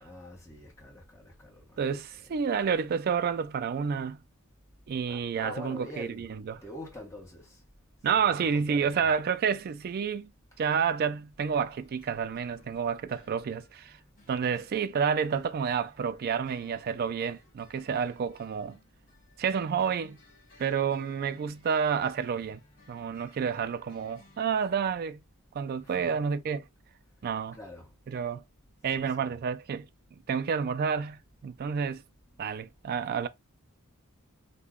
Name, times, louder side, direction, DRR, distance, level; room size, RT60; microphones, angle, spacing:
voice 1, 0.0-1.8 2.1-2.3 5.1-6.4 6.6-7.6 8.1-9.1 25.8-26.2 27.5-28.0 28.9-29.4, left 1 dB, 15° left, 1.2 m, -46 dB
voice 2, 1.8-4.2 4.9-6.6 8.0-10.3 10.6-14.0 14.3-18.8 19.4-20.2 20.6-22.6 22.9-25.2 25.5-26.6 27.2-27.6 28.1-28.4 28.8-32.0 32.4-33.3, right 6 dB, 45° right, 0.3 m, -29 dB
sound 1, 11.5-24.8, left 2 dB, 40° left, 1.3 m, -61 dB
2.8 x 2.1 x 3.6 m
head